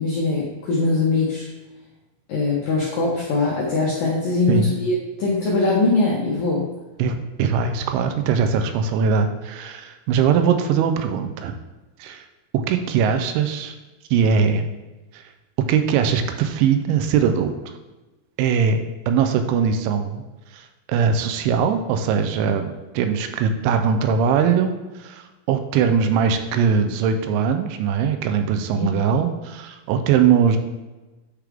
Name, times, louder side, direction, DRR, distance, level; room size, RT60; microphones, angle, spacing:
voice 1, 0.0-1.5 2.3-6.7 28.7-28.9, left 3 dB, 80° left, -4 dB, 2.0 m, -22 dB
voice 2, 7.0-11.5 12.0-12.2 12.5-13.8 14.1-14.7 15.1-15.2 15.7-17.5 18.4-18.8 19.1-20.2 20.5-20.6 20.9-30.6, right 6 dB, 85° right, 7 dB, 2.9 m, -21 dB
9.3 x 4.8 x 3.5 m, 1.1 s
omnidirectional pair, 5.5 m